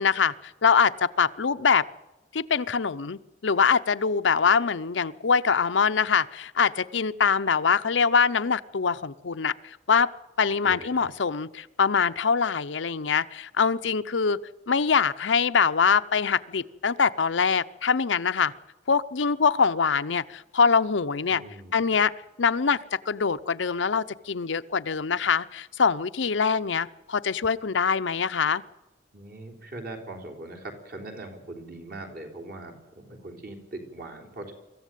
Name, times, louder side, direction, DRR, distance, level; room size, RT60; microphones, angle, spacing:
voice 1, 0.0-1.9 2.3-10.1 10.4-14.4 14.7-18.5 18.9-21.4 21.7-22.1 22.4-28.6, left 6 dB, 80° left, 11 dB, 0.7 m, -24 dB
voice 2, 21.3-22.0 29.1-34.5, right 2 dB, 50° right, 3 dB, 3.7 m, -41 dB
24.0 x 14.5 x 9.2 m, 1.0 s
head